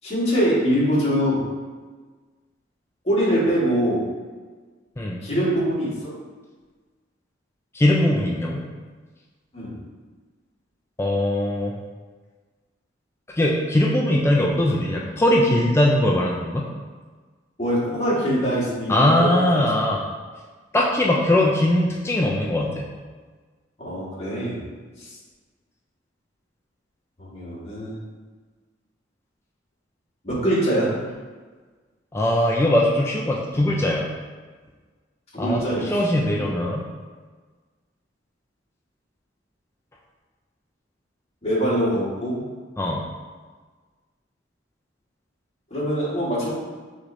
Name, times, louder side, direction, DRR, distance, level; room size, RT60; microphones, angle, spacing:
voice 1, 0.0-1.4 3.0-4.0 5.2-5.9 9.5-9.8 17.6-19.7 23.8-24.6 25.0-25.1 27.2-28.0 30.2-30.9 35.3-36.5 41.4-42.4 45.7-46.5, equal, 35° left, -7 dB, 1.5 m, -23 dB
voice 2, 7.7-8.6 11.0-11.7 13.4-16.7 18.9-20.0 20.7-22.9 32.1-34.1 35.4-36.8 42.8-43.0, left 1 dB, 15° left, -2 dB, 0.3 m, -20 dB
6.0 x 3.1 x 2.6 m, 1.4 s
head